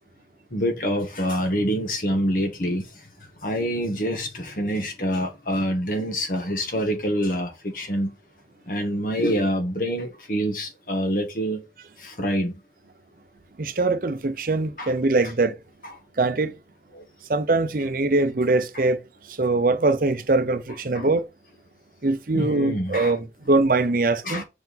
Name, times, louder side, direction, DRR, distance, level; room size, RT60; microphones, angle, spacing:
voice 1, 0.5-2.8 3.4-8.1 8.7-11.6 12.0-12.5 14.8-14.9 16.9-17.0 20.9-21.1 22.3-23.1 24.2-24.4, equal, 50° left, 1.4 m, -26 dB
voice 2, 13.6-15.6 16.2-16.6 17.3-19.0 19.3-21.2 22.0-24.4, right 2 dB, 50° right, 0.6 m, -22 dB
5.2 x 4.5 x 4.0 m
head